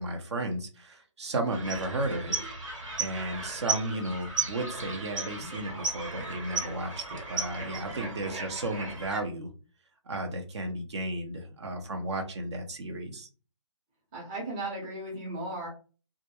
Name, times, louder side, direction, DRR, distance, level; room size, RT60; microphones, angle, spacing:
voice 1, 0.0-2.4 3.0-9.5 10.1-13.3, right 1 dB, 60° right, 4 dB, 0.6 m, -34 dB
sound 1, 1.5-9.2, right 3 dB, 90° right, 1.4 m, -35 dB
voice 2, 14.1-15.7, right 2 dB, 15° right, -3 dB, 0.6 m, -36 dB
2.3 x 2.1 x 2.8 m, 0.37 s
hypercardioid pair, 160°, 16 cm